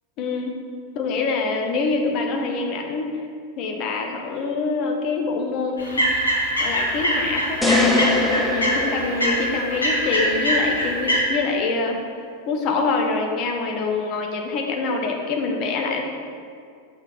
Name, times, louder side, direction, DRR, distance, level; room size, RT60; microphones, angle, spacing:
voice 1, 0.2-0.6 0.9-3.1 3.6-6.1 6.6-12.0 12.5-16.1, left 4 dB, 40° left, 3 dB, 0.8 m, -25 dB
sound 1, 5.8-11.2, equal, 80° left, 1.4 m, -23 dB
sound 2, 7.6-9.9, left 2 dB, 5° left, 0.7 m, -23 dB
6.0 x 4.1 x 5.3 m, 2.3 s
figure-of-eight pair, 90°, 0 cm